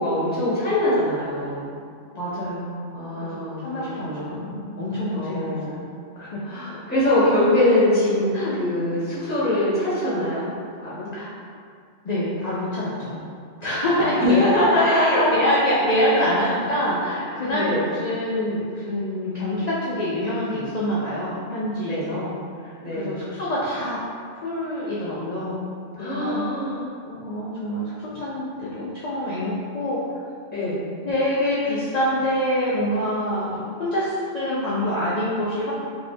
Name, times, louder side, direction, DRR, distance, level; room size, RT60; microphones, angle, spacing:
voice 1, 0.0-1.7 2.9-4.5 5.1-5.8 6.4-8.3 8.6-10.5 10.8-11.1 14.0-15.4 17.5-17.8 21.9-22.1 22.8-23.2 26.0-26.8 30.5-30.9, left 1 dB, 10° left, -11 dB, 1.0 m, -23 dB
voice 2, 2.1-2.8 3.2-5.8 6.2-6.4 8.3-8.6 11.1-11.3 12.0-13.2 13.6-14.5 14.7-22.3 22.6-24.0 24.4-25.6 26.0-26.5 27.0-30.0 31.0-35.7, equal, 55° left, -8 dB, 0.4 m, -26 dB
3.1 x 2.7 x 2.6 m, 2.3 s
omnidirectional pair, 1.2 m